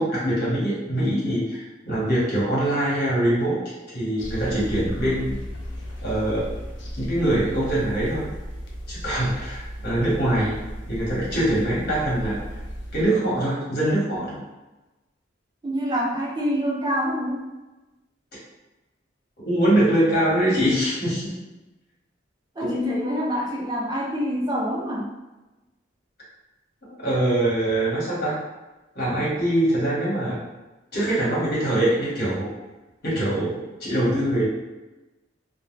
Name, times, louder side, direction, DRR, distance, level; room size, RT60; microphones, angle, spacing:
voice 1, 0.0-3.6 3.9-5.4 6.0-6.5 7.0-8.3 8.9-10.6 10.9-12.4 12.9-14.4 19.4-21.3 22.6-22.9 27.0-28.4 28.9-30.4 30.9-32.5 33.0-34.5, right 1 dB, 55° left, -7 dB, 1.2 m, -23 dB
sound 1, 4.2-13.1, equal, 75° left, 0.5 m, -35 dB
voice 2, 15.6-17.4 22.6-25.1, equal, 20° right, -3 dB, 0.4 m, -26 dB
2.2 x 2.2 x 3.1 m, 1.1 s
head